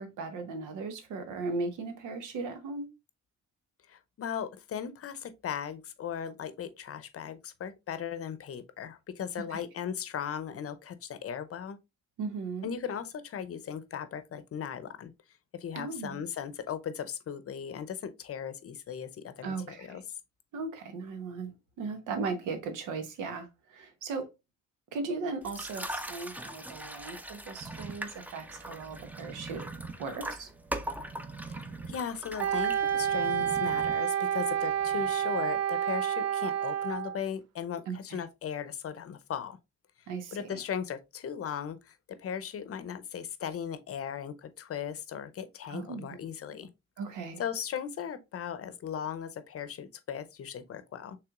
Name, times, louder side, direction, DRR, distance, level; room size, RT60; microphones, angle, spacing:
voice 1, 0.0-2.9 9.5-9.6 12.2-12.7 15.7-16.2 19.4-20.0 20.5-24.3 24.9-29.6 30.0-30.5 37.9-38.2 40.1-40.4 45.7-46.3 47.0-47.4, right 4 dB, 90° right, 1.0 m, -37 dB
voice 2, 3.9-11.8 12.6-15.1 15.5-20.0 31.9-39.6 40.0-46.7 47.4-51.2, left 8 dB, 50° left, 0.7 m, -37 dB
sound 1, 25.4-33.2, right 1 dB, 5° right, 0.6 m, -41 dB
sound 2, 27.6-35.6, right 4 dB, 25° right, 0.9 m, -46 dB
Wind instrument woodwind instrument, 32.4-37.2, right 9 dB, 60° right, 0.5 m, -29 dB
5.8 x 3.3 x 2.4 m
cardioid pair, 90°, 30 cm